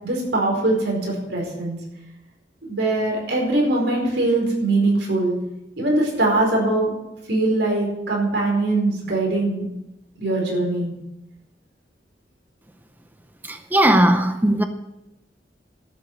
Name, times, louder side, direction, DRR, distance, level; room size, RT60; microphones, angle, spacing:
voice 1, 0.0-1.8 2.7-5.4 5.8-6.9 7.3-9.6 10.2-10.9, right 2 dB, 80° right, 4.9 m, -22 dB
voice 2, 13.4-14.6, right 1 dB, 10° right, 0.6 m, -18 dB
12.0 x 8.1 x 8.1 m
head